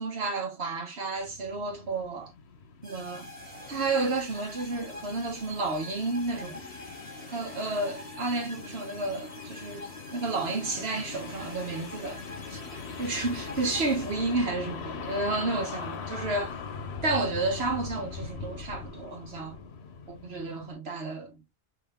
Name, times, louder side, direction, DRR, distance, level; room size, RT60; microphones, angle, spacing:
voice 1, 0.0-2.3 2.8-3.3 3.7-6.7 7.3-12.6 13.0-16.6 17.0-19.6 20.1-21.4, right 3 dB, 75° right, 1.4 m, -31 dB
sound 1, 1.2-20.7, left 5 dB, 85° left, 1.1 m, -41 dB
sound 2, 2.8-14.6, left 1 dB, 10° left, 1.5 m, -46 dB
3.5 x 2.8 x 3.5 m
omnidirectional pair, 1.1 m